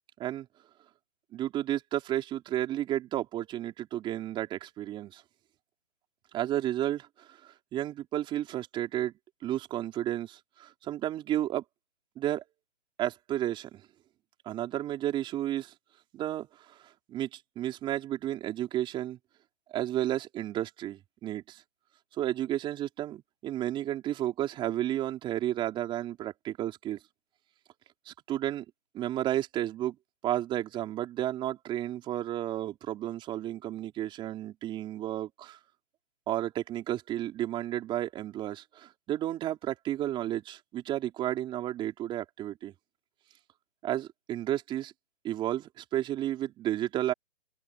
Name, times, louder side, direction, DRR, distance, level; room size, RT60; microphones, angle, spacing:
voice 1, 1.3-5.2 6.3-9.1 9.4-11.6 12.2-12.4 13.0-13.8 14.5-15.7 16.1-16.8 17.1-19.2 19.7-21.6 22.2-27.0 28.1-28.6 28.9-30.0 30.2-35.6 36.3-42.7 43.8-44.9 45.2-47.1, right 12 dB, 10° right, 4.0 m, -32 dB
hypercardioid pair, 160°, 38 cm